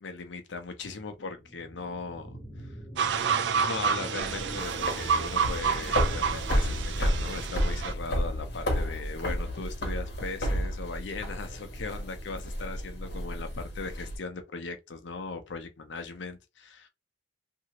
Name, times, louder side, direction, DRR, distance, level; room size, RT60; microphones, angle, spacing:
voice 1, 0.0-2.7 3.6-16.9, left 4 dB, 85° left, 0.6 m, -38 dB
sound 1, 1.2-10.2 10.6-10.7, right 1 dB, 20° left, 1.0 m, -44 dB
sound 2, 3.0-7.9, right 6 dB, 70° right, 0.4 m, -29 dB
sound 3, 4.2-14.2, equal, 60° left, 1.0 m, -31 dB
2.8 x 2.7 x 2.8 m
head